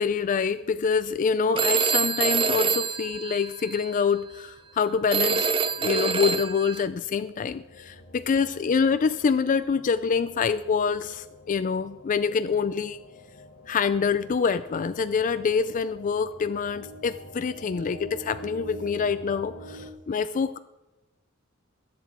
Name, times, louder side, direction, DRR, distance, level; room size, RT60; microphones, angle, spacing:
voice 1, 0.0-5.5 5.8-13.0 13.7-20.6, left 5 dB, 40° left, 12 dB, 0.4 m, -26 dB
Telephone, 1.6-3.9 5.1-6.8, right 5 dB, 25° right, 0.6 m, -25 dB
sound 1, 4.1-19.9, equal, 80° left, 1.6 m, -47 dB
20.0 x 8.0 x 4.4 m, 1.0 s
head